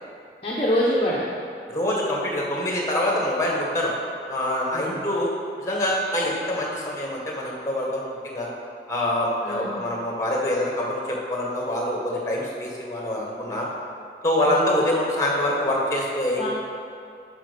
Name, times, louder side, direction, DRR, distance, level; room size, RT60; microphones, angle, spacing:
voice 1, 0.4-1.2 4.7-5.0 9.4-9.7 14.5-14.8 16.4-16.5, equal, 35° left, -5 dB, 0.9 m, -25 dB
voice 2, 1.7-3.9 4.3-5.3 5.6-8.5 8.9-13.7 14.2-16.5, left 1 dB, 15° left, -2 dB, 1.5 m, -25 dB
8.7 x 5.8 x 5.1 m, 2.5 s
head